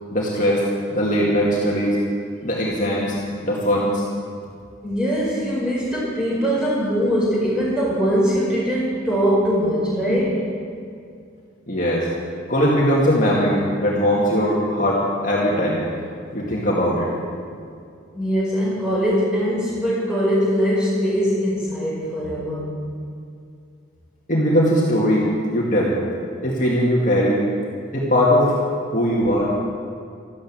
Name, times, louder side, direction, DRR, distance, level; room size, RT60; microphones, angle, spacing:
voice 1, 0.1-0.6 0.9-2.0 2.4-4.0 10.1-10.2 11.7-12.1 12.5-15.8 16.3-17.1 24.3-25.9 26.4-27.4 27.9-28.6 28.9-29.5, equal, 40° left, -5 dB, 2.2 m, -20 dB
voice 2, 4.8-10.5 18.1-22.7, equal, 5° right, -7 dB, 5.3 m, -21 dB
13.5 x 13.0 x 7.5 m, 2.3 s
head